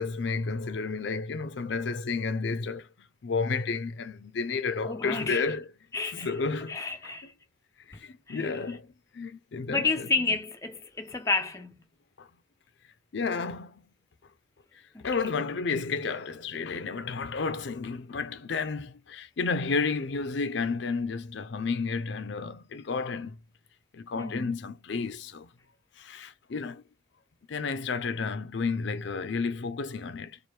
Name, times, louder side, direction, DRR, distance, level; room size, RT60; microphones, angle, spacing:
voice 1, 0.0-5.7 6.1-7.1 7.9-9.9 12.2-12.3 13.1-13.8 15.0-23.4 23.9-25.5 26.0-26.8 27.5-30.4, left 4 dB, 70° left, 0.5 m, -31 dB
voice 2, 4.8-5.5 5.9-6.4 6.7-7.3 8.3-8.5 9.7-11.8 14.9-15.0 24.2-24.6, left 3 dB, 15° left, 0.5 m, -31 dB
4.4 x 2.5 x 3.2 m
head